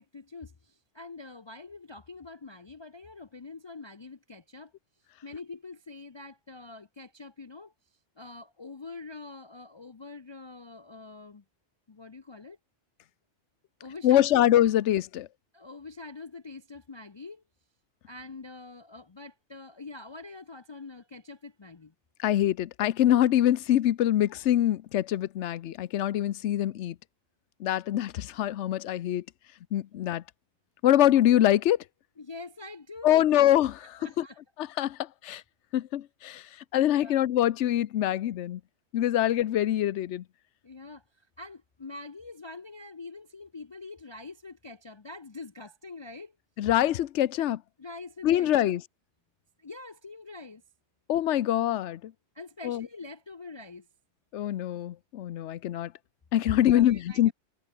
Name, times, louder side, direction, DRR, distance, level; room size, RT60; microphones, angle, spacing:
voice 1, 0.0-4.7 5.2-7.7 8.2-11.4 11.9-12.6 13.8-14.4 15.5-17.4 18.1-21.9 26.7-26.8 32.2-33.2 34.0-34.4 36.9-37.2 40.6-41.0 41.4-46.3 47.8-48.7 49.6-50.6 52.3-53.9 56.6-57.3, left 3 dB, 30° left, 0.6 m, -45 dB
voice 2, 14.0-15.3 22.2-26.9 27.6-29.2 29.7-30.2 30.8-31.8 33.0-34.2 34.6-35.0 35.2-35.4 35.7-36.4 36.7-38.6 38.9-40.2 46.6-47.6 48.2-48.8 51.1-52.1 52.6-52.9 54.3-55.9 56.3-57.3, left 12 dB, 80° left, 1.0 m, -24 dB
omnidirectional pair, 1.2 m